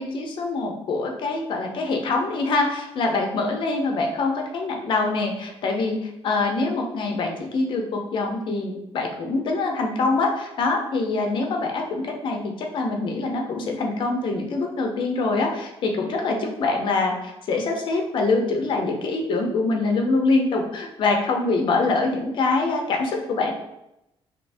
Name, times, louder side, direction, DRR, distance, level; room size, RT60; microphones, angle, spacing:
voice 1, 0.0-23.5, left 3 dB, 55° left, 2 dB, 0.6 m, -24 dB
2.8 x 2.6 x 3.3 m, 0.89 s
cardioid pair, 155°, 10 cm